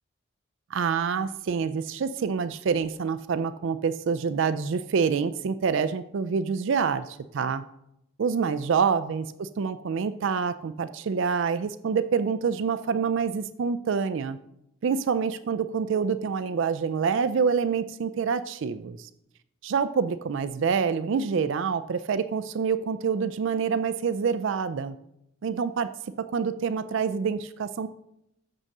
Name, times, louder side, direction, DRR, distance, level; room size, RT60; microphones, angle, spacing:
voice 1, 0.7-7.6 8.2-14.4 14.8-19.1 19.6-25.0 25.4-25.9 26.3-27.9, right 6 dB, 60° right, 12 dB, 0.4 m, -27 dB
6.5 x 6.1 x 6.6 m, 0.82 s
head